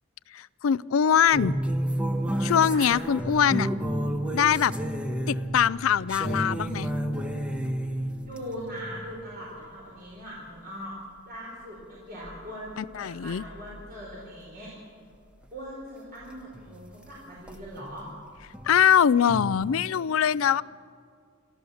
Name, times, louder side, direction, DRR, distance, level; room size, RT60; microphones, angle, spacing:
voice 1, 0.3-1.5 2.4-3.7 4.3-4.7 5.3-6.9 12.8-13.4 18.6-20.6, left 8 dB, 70° left, 19 dB, 0.4 m, -23 dB
sound 1, 1.3-9.0 12.2-12.5 12.9-14.0 16.2-16.3 16.5-16.9 17.5-18.8 19.3-19.7, right 1 dB, 5° right, 1.2 m, -31 dB
voice 2, 8.2-10.9 11.3-14.7 15.5-18.1, equal, 45° right, -5 dB, 4.5 m, -40 dB
30.0 x 14.0 x 7.1 m, 2.3 s
head